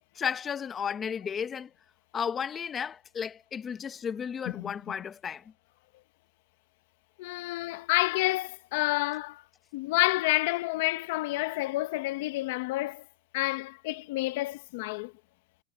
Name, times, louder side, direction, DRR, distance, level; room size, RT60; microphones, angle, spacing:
voice 1, 0.1-1.7 2.1-5.4, left 7 dB, 20° left, 1.4 m, -33 dB
voice 2, 7.2-9.4 9.7-13.0 13.3-15.1, left 20 dB, 60° left, 1.2 m, -29 dB
supercardioid pair, 140°, 0 cm